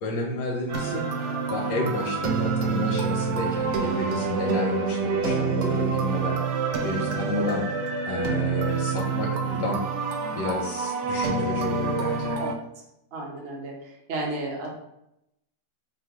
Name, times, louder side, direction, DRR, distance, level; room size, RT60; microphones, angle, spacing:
voice 1, 0.0-1.1 1.5-6.4 6.8-7.7 8.1-9.8 10.3-12.4, left 3 dB, 80° left, -2 dB, 1.3 m, -31 dB
sound 1, 0.7-12.5, right 5 dB, 80° right, 0.6 m, -27 dB
voice 2, 13.1-13.7 14.1-14.7, right 2 dB, 45° right, -2 dB, 0.9 m, -32 dB
3.9 x 2.1 x 4.5 m, 0.83 s
omnidirectional pair, 1.8 m